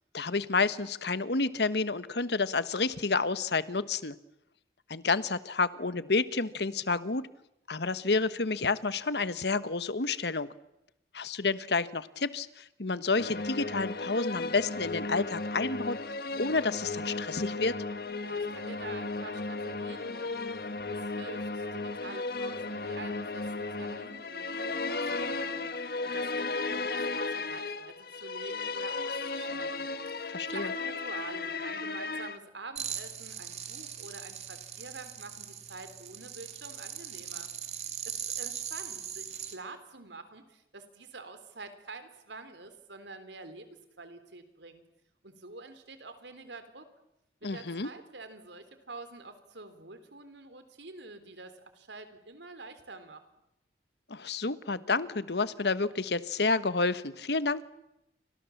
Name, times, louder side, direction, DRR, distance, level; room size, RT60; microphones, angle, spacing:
voice 1, 0.1-4.1 4.9-7.2 7.7-10.5 11.1-16.0 16.4-17.7 30.3-30.7 47.4-47.9 54.1-57.7, left 3 dB, 70° left, 14 dB, 1.2 m, -30 dB
sound 1, 13.2-32.4, left 3 dB, 55° left, 1.5 m, -35 dB
voice 2, 18.2-37.5 37.8-43.7 44.0-44.8 45.2-46.9 47.4-53.2, right 3 dB, 85° right, 10 dB, 3.6 m, -47 dB
sound 2, 32.8-39.6, right 8 dB, 35° right, 2.6 m, -40 dB
29.5 x 26.0 x 7.2 m, 0.87 s
head